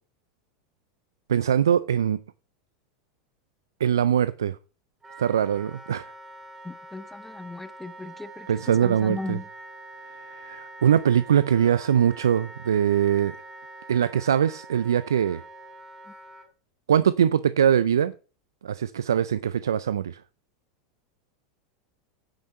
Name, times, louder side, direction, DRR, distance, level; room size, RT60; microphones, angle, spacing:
voice 1, 1.3-2.2 3.8-4.6 5.2-6.1 8.5-9.4 10.2-13.4 13.9-15.4 16.9-18.1 18.6-20.2, right 9 dB, 85° right, 0.4 m, -22 dB
Wind instrument woodwind instrument, 5.0-16.5, right 2 dB, 15° right, 4.1 m, -45 dB
voice 2, 6.6-8.5 8.8-9.5, left 2 dB, 10° left, 0.9 m, -36 dB
10.0 x 5.9 x 6.4 m
hypercardioid pair, 90°, 2 cm